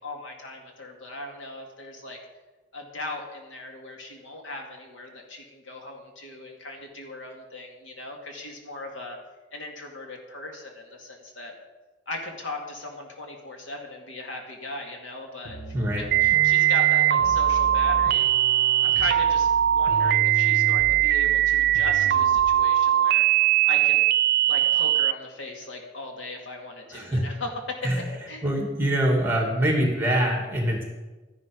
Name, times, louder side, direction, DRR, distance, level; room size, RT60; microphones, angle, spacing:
voice 1, 0.0-2.2 2.7-9.2 9.5-11.5 12.1-15.6 16.0-18.3 18.8-23.3 23.6-24.0 24.5-28.4, left 2 dB, 70° left, 2 dB, 2.3 m, -38 dB
sound 1, 15.4-22.6, equal, 40° left, 1.9 m, -35 dB
voice 2, 15.7-16.0 26.9-27.2 27.8-28.0 28.4-30.8, right 1 dB, 10° right, 1 dB, 2.5 m, -24 dB
sound 2, 16.1-25.1, right 13 dB, 50° right, 0.4 m, -20 dB
12.5 x 10.5 x 5.3 m, 1.2 s
head